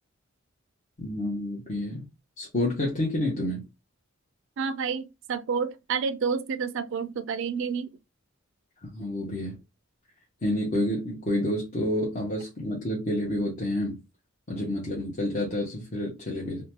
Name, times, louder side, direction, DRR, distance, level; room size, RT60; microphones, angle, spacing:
voice 1, 1.0-2.0 2.4-3.6 8.8-9.6 10.4-14.0 14.5-16.6, left 1 dB, 40° left, 0.9 m, -29 dB
voice 2, 4.6-7.9, right 5 dB, 60° right, 0.4 m, -29 dB
2.7 x 2.2 x 2.9 m
head